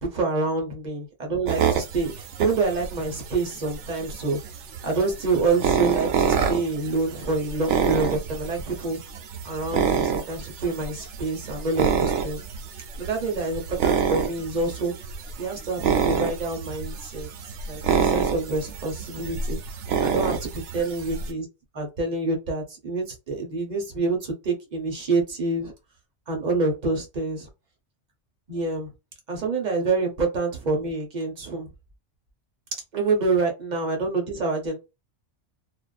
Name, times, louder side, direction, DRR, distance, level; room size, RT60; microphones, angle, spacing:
voice 1, 0.1-4.4 4.8-9.0 9.4-12.4 13.0-14.9 15.4-17.3 17.7-20.4 20.7-21.5 21.7-25.7 26.3-27.4 28.5-28.9 29.3-31.7 32.9-34.8, right 3 dB, 40° right, 0.8 m, -27 dB
sound 1, 1.5-21.3, right 7 dB, 75° right, 0.9 m, -28 dB
2.4 x 2.3 x 2.3 m
omnidirectional pair, 1.3 m